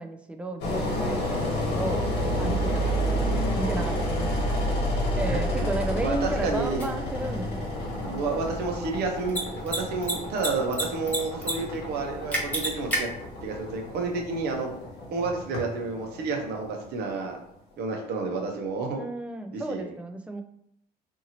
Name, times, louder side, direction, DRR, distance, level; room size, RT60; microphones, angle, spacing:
voice 1, 0.0-2.1 2.4-4.4 5.2-7.7 19.0-20.4, right 1 dB, 5° right, 5 dB, 0.3 m, -33 dB
Engine, 0.6-17.5, equal, 75° left, 1.0 m, -30 dB
voice 2, 5.3-5.7 6.0-6.9 8.0-13.1 13.4-14.7 15.1-17.4 17.8-19.0 19.5-19.9, right 4 dB, 75° right, 2 dB, 0.8 m, -30 dB
Mechanisms, 6.8-6.9 9.2-9.4 9.7-9.8 10.0-10.8 11.1-11.5 11.8-11.9 12.3-13.0, right 1 dB, 10° left, 0.9 m, -27 dB
2.7 x 2.6 x 2.8 m, 0.71 s
cardioid pair, 110°, 17 cm